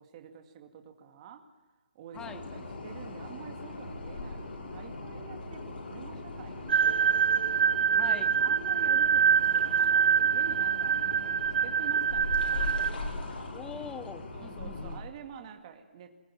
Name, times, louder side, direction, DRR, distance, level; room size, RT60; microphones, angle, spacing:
voice 1, 0.0-1.5 1.9-7.3 8.4-13.5 14.3-16.1, right 7 dB, 35° right, 6 dB, 2.2 m, -48 dB
sound 1, 2.1-15.0, left 2 dB, 65° left, 6.4 m, -39 dB
sound 2, 6.7-12.9, right 7 dB, 60° right, 0.9 m, -25 dB
voice 2, 8.0-8.3 13.5-15.0, left 6 dB, 10° left, 11 dB, 1.2 m, -43 dB
23.0 x 21.5 x 7.4 m, 1.2 s
hypercardioid pair, 155°, 6 cm